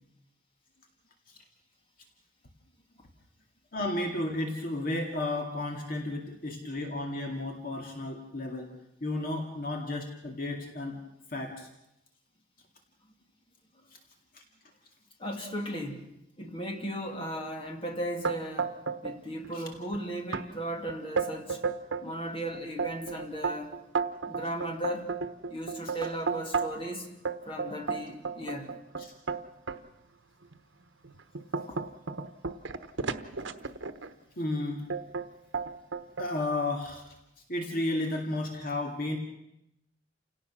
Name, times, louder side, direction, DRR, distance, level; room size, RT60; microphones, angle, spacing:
voice 1, 3.7-8.7 9.0-11.0 11.3-11.7 14.3-14.4 19.5-19.6 29.0-29.1 34.4-34.9 36.2-37.0 37.5-39.2, left 2 dB, 50° left, 2 dB, 2.3 m, -33 dB
voice 2, 15.2-16.1 16.4-18.8 19.0-21.6 22.0-23.7 24.3-25.1 25.5-27.1 27.4-28.7 31.7-31.8, right 1 dB, 30° left, 2 dB, 2.8 m, -36 dB
sound 1, 18.2-19.2 19.4-20.0 20.3-20.4 20.9-22.1 22.5-26.9 27.2-29.8 30.4-30.6 31.0-34.1 34.9-35.3 35.5-36.3, right 5 dB, 80° right, 1.1 m, -33 dB
29.0 x 17.5 x 6.3 m, 0.85 s
head